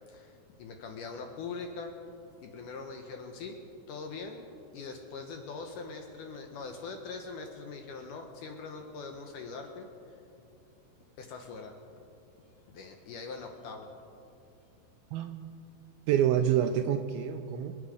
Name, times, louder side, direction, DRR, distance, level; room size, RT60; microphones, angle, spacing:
voice 1, 0.1-1.9 2.4-3.6 3.9-4.4 4.7-10.2 11.2-11.7 12.7-13.9, left 4 dB, 75° left, 4 dB, 1.9 m, -42 dB
voice 2, 15.1-15.5 16.1-17.7, right 10 dB, 80° right, 7 dB, 2.2 m, -27 dB
26.5 x 9.7 x 5.2 m, 2.7 s
omnidirectional pair, 4.8 m